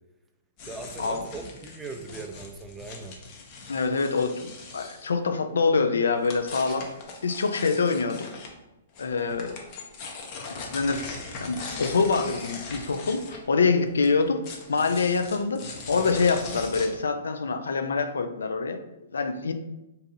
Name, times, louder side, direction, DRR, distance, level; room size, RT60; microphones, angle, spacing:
sound 1, 0.6-5.1 6.2-8.5 9.0-16.9, left 4 dB, 40° left, 0.6 m, -40 dB
voice 1, 0.7-3.2, right 3 dB, 10° right, 4 dB, 0.4 m, -39 dB
voice 2, 3.7-6.9 7.2-8.3 9.0-9.5 10.5-18.8 19.1-19.5, left 4 dB, 85° left, 8 dB, 0.3 m, -25 dB
2.6 x 2.5 x 4.0 m, 0.96 s
hypercardioid pair, 135°, 0 cm